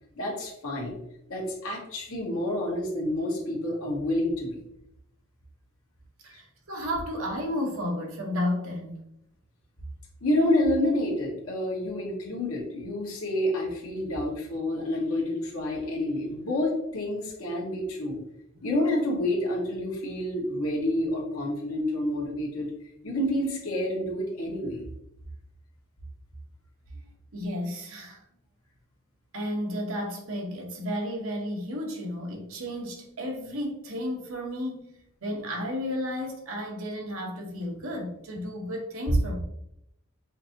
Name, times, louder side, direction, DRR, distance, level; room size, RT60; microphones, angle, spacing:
voice 1, 0.1-0.9 1.3-4.6 10.2-18.2 18.6-22.7 23.0-24.8, left 1 dB, 75° left, -1 dB, 1.2 m, -28 dB
voice 2, 6.2-9.0 18.5-18.6 26.9-28.2 29.3-34.9 35.2-39.3, left 1 dB, 70° right, 0 dB, 1.0 m, -33 dB
5.7 x 2.7 x 2.7 m, 0.79 s
head